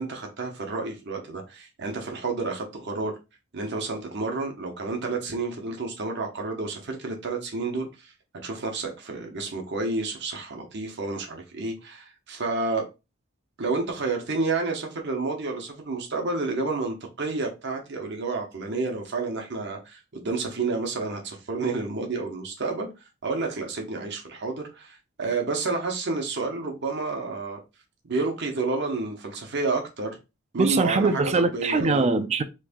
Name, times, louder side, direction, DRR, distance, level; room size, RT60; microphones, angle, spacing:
voice 1, 0.0-3.1 3.5-8.1 8.4-12.9 13.6-22.9 23.2-27.6 28.0-30.2 30.5-31.2 31.5-32.0, right 3 dB, 55° right, 0.9 m, -30 dB
voice 2, 30.6-32.4, right 3 dB, 30° right, 0.4 m, -22 dB
3.2 x 2.6 x 3.5 m
head